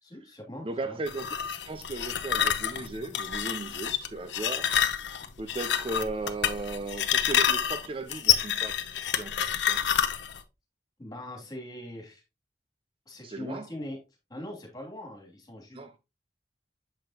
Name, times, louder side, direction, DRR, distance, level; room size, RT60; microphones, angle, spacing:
voice 1, 0.0-1.0 11.0-12.2 13.1-14.0 14.3-15.8, left 1 dB, 20° left, 2.6 m, -41 dB
voice 2, 0.6-4.7 5.4-9.8 13.2-13.7 15.7-15.9, right 2 dB, 30° right, 0.5 m, -37 dB
sound 1, 1.1-10.4, left 9 dB, 85° left, 0.7 m, -28 dB
7.5 x 5.2 x 2.9 m
head